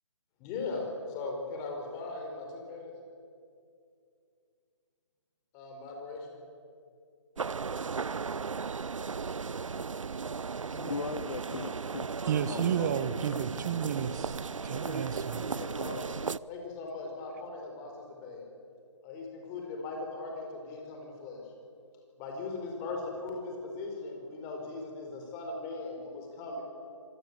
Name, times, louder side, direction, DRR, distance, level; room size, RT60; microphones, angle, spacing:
voice 1, 0.4-2.9 5.5-6.4 14.6-16.1 16.5-18.4 19.0-21.4 22.2-26.6, left 3 dB, 20° left, 5.0 m, -39 dB
sound 1, 7.4-16.4, right 5 dB, 90° right, 0.6 m, -36 dB
voice 2, 10.7-12.9, left 4 dB, 70° left, 1.3 m, -39 dB
voice 3, 12.3-15.5, right 8 dB, 35° right, 1.0 m, -32 dB
26.0 x 20.5 x 8.3 m
figure-of-eight pair, 150°, 16 cm